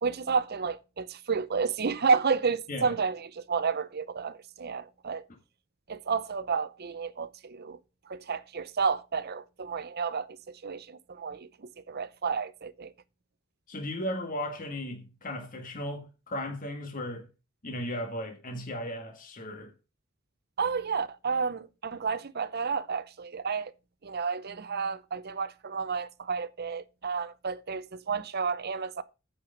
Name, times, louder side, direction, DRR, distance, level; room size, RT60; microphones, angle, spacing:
voice 1, 0.0-5.2 5.9-7.8 8.1-12.9 20.6-23.7 24.0-29.0, right 5 dB, 50° right, 0.7 m, -31 dB
voice 2, 13.7-17.3 17.6-19.7, left 1 dB, 40° left, 1.6 m, -36 dB
8.8 x 5.0 x 6.4 m
head